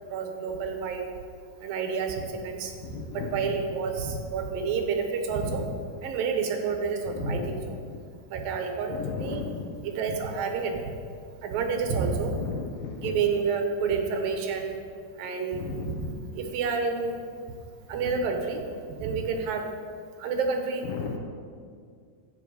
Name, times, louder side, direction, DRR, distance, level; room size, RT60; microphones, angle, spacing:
voice 1, 0.1-1.1 1.6-2.7 3.1-5.6 6.0-7.8 8.3-9.4 9.8-10.9 11.4-12.4 13.0-14.7 15.2-16.0 16.3-17.1 17.9-18.6 19.0-19.6 20.2-20.8, right 5 dB, 70° right, 4 dB, 2.5 m, -29 dB
voice 2, 2.8-3.6 7.1-8.0 8.9-9.7 12.3-13.2 15.5-16.2 19.0-19.1 20.8-21.2, left 6 dB, 75° left, 2 dB, 2.1 m, -36 dB
14.0 x 8.7 x 4.9 m, 2.1 s
omnidirectional pair, 4.7 m